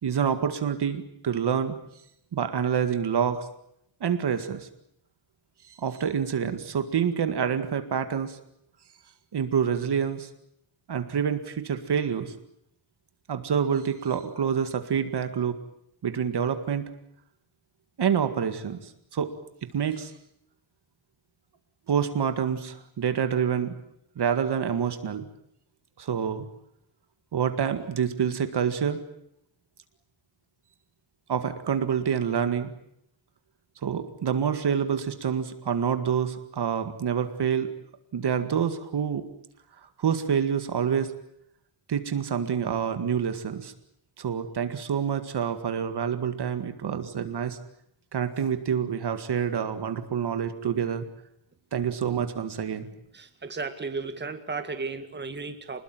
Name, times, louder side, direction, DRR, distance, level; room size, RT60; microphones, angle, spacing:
voice 1, 0.0-1.8 2.3-3.5 4.0-4.7 5.7-8.4 9.3-10.3 10.9-12.3 13.3-15.6 16.0-16.9 18.0-19.3 19.7-20.1 21.9-23.7 24.2-25.3 26.0-26.5 27.3-29.0 31.3-32.7 33.8-37.7 38.1-39.3 40.0-41.1 41.9-43.7 44.2-47.6 48.1-51.0 51.7-52.9, right 7 dB, 50° right, 9 dB, 2.0 m, -27 dB
voice 2, 53.1-55.8, right 4 dB, 20° right, 7 dB, 2.0 m, -34 dB
27.0 x 21.0 x 9.1 m, 0.76 s
wide cardioid pair, 160°, 49 cm